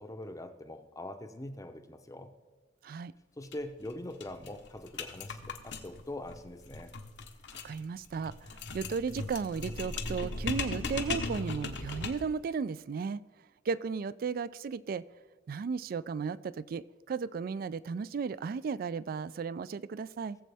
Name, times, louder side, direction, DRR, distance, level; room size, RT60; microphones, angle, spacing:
voice 1, 0.0-2.3 3.4-6.9, left 1 dB, 20° left, 8 dB, 0.6 m, -43 dB
sound 1, 3.4-3.6 3.9-4.0 4.2-12.4, left 3 dB, 75° left, 1.0 m, -38 dB
voice 2, 7.6-13.2 13.7-15.0 15.5-20.4, right 5 dB, 55° right, 18 dB, 0.3 m, -35 dB
18.0 x 7.4 x 3.4 m, 1.4 s
head